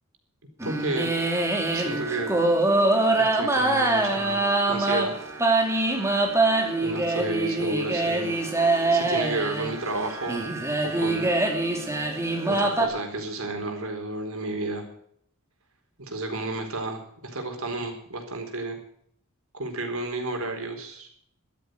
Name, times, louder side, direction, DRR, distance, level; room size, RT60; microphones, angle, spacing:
sound 1, 0.6-12.9, right 2 dB, 15° right, 2.6 m, -24 dB
voice 1, 0.6-1.1 1.7-2.3 3.2-4.4 4.7-5.1 6.8-8.4 8.9-10.5 10.8-11.3 12.5-14.9 16.0-18.8 19.5-21.2, right 2 dB, 80° right, 4 dB, 4.3 m, -31 dB
13.5 x 12.5 x 6.5 m, 0.66 s
head